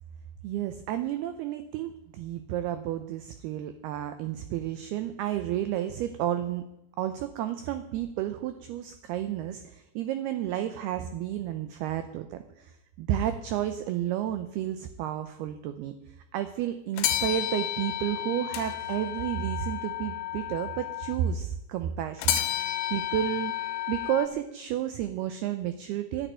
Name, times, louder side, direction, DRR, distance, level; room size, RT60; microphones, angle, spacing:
voice 1, 0.4-6.7 7.0-15.9 16.3-23.5 23.9-26.3, right 11 dB, 90° right, 9 dB, 2.2 m, -31 dB
sound 1, 17.0-21.2 22.2-24.3, left 13 dB, 80° left, 3.1 m, -31 dB
11.0 x 10.5 x 9.1 m, 0.89 s
omnidirectional pair, 5.4 m